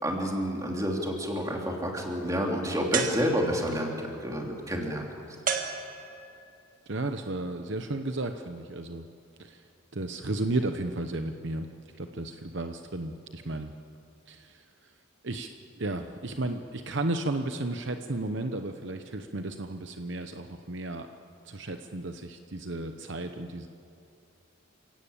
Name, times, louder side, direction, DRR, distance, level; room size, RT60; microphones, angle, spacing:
voice 1, 0.0-5.1, equal, 15° right, 0 dB, 3.1 m, -29 dB
sound 1, 2.9-3.8 5.5-6.4, right 6 dB, 40° right, 1.9 m, -32 dB
voice 2, 6.9-9.1 9.4-9.6 9.9-11.7 12.0-13.7 14.3-14.9 15.2-15.5 15.8-21.1 21.4-23.7, right 2 dB, 55° right, 6 dB, 0.9 m, -33 dB
29.0 x 17.0 x 8.8 m, 2.6 s
head